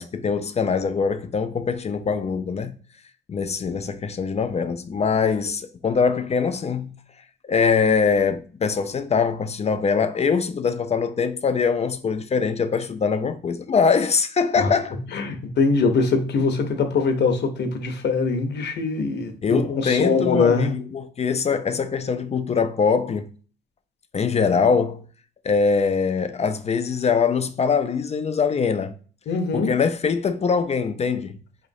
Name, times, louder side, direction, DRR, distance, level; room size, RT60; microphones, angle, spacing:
voice 1, 0.0-2.8 3.3-6.9 7.4-15.0 19.4-23.3 24.1-25.0 25.4-28.9 29.5-31.4, left 5 dB, 35° left, 0.4 m, -23 dB
voice 2, 15.1-20.7 29.3-29.7, left 4 dB, 60° left, 0.8 m, -22 dB
4.6 x 3.1 x 2.6 m
cardioid pair, 90°, 20 cm